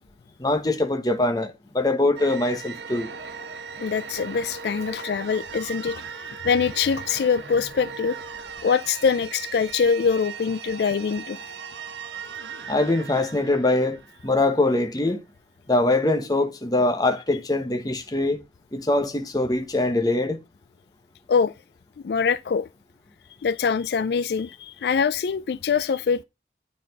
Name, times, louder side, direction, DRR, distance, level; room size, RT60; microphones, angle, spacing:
voice 1, 0.4-3.1 12.7-15.2 15.7-18.4 18.7-20.4, left 2 dB, 20° left, 1.1 m, -23 dB
sound 1, 2.2-14.7, right 6 dB, 85° right, 1.2 m, -38 dB
voice 2, 3.8-6.0 6.4-8.2 8.6-11.4 21.3-21.5 22.0-22.7 23.4-26.2, left 6 dB, 65° left, 0.3 m, -23 dB
9.4 x 4.2 x 5.3 m
head